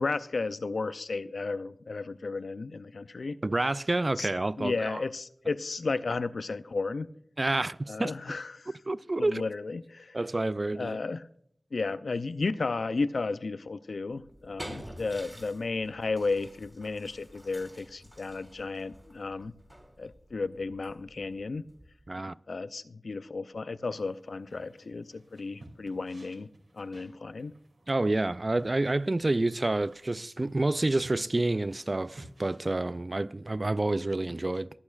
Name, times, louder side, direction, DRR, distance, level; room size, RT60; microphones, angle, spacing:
voice 1, 0.0-3.4 4.2-4.3 4.6-7.1 7.9-8.7 9.2-10.2 10.8-11.3 11.7-19.5 20.0-21.6 22.5-26.5 26.7-27.5, left 3 dB, 75° left, 0.5 m, -33 dB
voice 2, 3.4-5.0 7.4-8.1 8.9-9.4 10.1-11.0 22.1-22.4 27.9-34.7, right 2 dB, 35° right, 0.3 m, -28 dB
sound 1, 14.1-22.2, equal, 15° right, 2.1 m, -49 dB
sound 2, 23.9-32.6, right 1 dB, 70° right, 2.6 m, -55 dB
23.0 x 8.4 x 2.4 m
wide cardioid pair, 85°, 0 cm